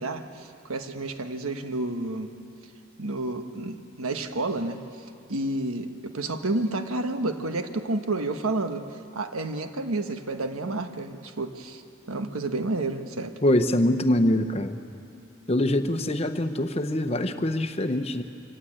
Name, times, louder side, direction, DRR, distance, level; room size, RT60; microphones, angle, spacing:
voice 1, 0.0-2.3 3.0-4.8 5.3-8.8 9.1-11.8 12.1-13.3, right 2 dB, 90° right, 7 dB, 1.3 m, -30 dB
voice 2, 13.4-14.8 15.5-18.2, left 1 dB, 30° left, 8 dB, 0.9 m, -24 dB
24.5 x 16.0 x 8.8 m, 2.7 s
head